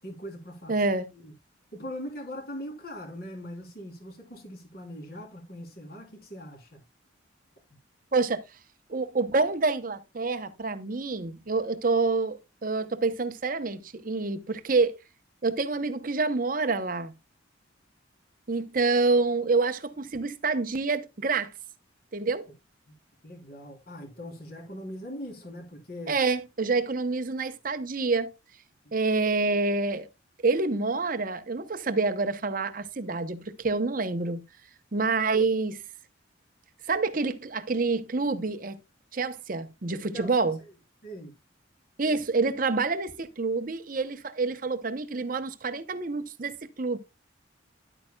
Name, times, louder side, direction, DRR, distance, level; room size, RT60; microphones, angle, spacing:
voice 1, 0.0-0.9 1.1-1.3 1.7-6.8 23.2-26.1 35.0-35.2 40.1-40.7 41.0-41.3, equal, 50° left, 3.4 m, -41 dB
voice 2, 0.7-1.1 8.1-8.4 8.9-14.9 15.4-17.1 18.5-21.5 22.1-22.5 26.1-28.3 28.9-30.1 30.4-34.4 34.9-35.8 36.9-38.8 39.1-40.6 42.0-47.0, right 3 dB, 45° right, 0.8 m, -27 dB
11.0 x 8.8 x 2.3 m
head